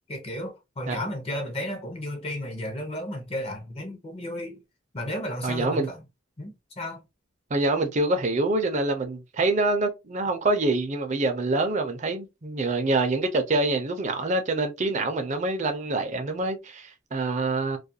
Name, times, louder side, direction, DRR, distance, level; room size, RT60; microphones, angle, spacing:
voice 1, 0.1-4.6 4.9-6.0 6.4-7.0, left 1 dB, 30° left, 0.7 m, -33 dB
voice 2, 5.4-5.9 7.5-17.8, right 2 dB, 40° right, 0.5 m, -26 dB
2.3 x 2.2 x 2.7 m
head